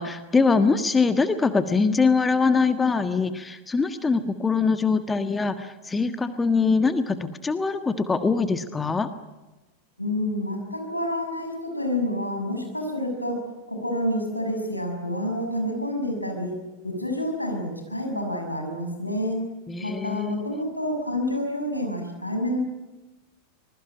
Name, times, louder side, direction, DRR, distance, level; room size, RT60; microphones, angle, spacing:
voice 1, 0.0-9.1 19.7-20.3, left 4 dB, 15° left, 11 dB, 1.5 m, -23 dB
voice 2, 10.0-16.5 16.8-19.4 19.8-22.6, left 1 dB, 85° left, 3 dB, 6.6 m, -28 dB
25.0 x 21.5 x 8.9 m, 1.1 s
figure-of-eight pair, 90°, 0 cm